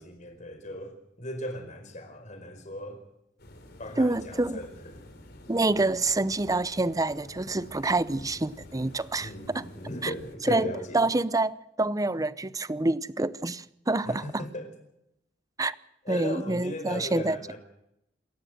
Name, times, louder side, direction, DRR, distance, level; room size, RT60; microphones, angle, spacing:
voice 1, 0.0-3.0 3.8-5.0 9.2-11.1 14.0-14.7 16.0-17.6, left 1 dB, 40° left, 5.0 m, -37 dB
sound 1, 3.4-10.4, left 1 dB, 60° left, 3.9 m, -49 dB
voice 2, 4.0-4.6 5.5-9.6 10.0-10.1 10.5-14.4 15.6-15.7 16.1-17.4, right 2 dB, 20° right, 0.7 m, -27 dB
28.0 x 14.0 x 7.9 m
head